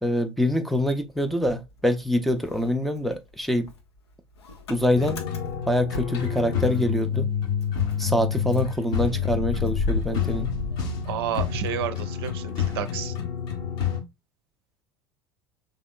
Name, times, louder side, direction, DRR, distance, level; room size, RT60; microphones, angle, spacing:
voice 1, 0.0-3.7 4.7-5.2 5.7-7.3 8.0-10.5, left 1 dB, ahead, 0.6 m, -25 dB
Motor vehicle (road) / Engine starting, 0.8-2.0 2.3-7.0 7.3-7.4 7.6-11.7, left 3 dB, 70° left, 0.8 m, -34 dB
sound 1, 4.9-14.0, left 8 dB, 55° left, 1.1 m, -28 dB
voice 2, 11.1-13.1, right 9 dB, 60° right, 0.6 m, -30 dB
5.2 x 3.5 x 2.3 m
figure-of-eight pair, 75°, 14 cm